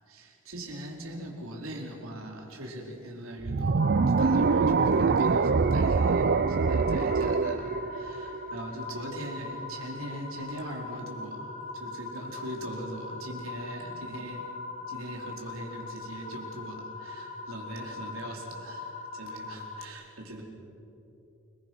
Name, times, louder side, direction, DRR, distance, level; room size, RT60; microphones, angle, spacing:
voice 1, 0.1-14.5 14.9-20.4, right 1 dB, 80° right, 0 dB, 4.7 m, -41 dB
sound 1, 3.4-8.7, right 4 dB, 50° right, 0.5 m, -24 dB
sound 2, 3.8-19.9, left 3 dB, 35° left, 2.2 m, -41 dB
29.5 x 21.0 x 6.3 m, 3.0 s
head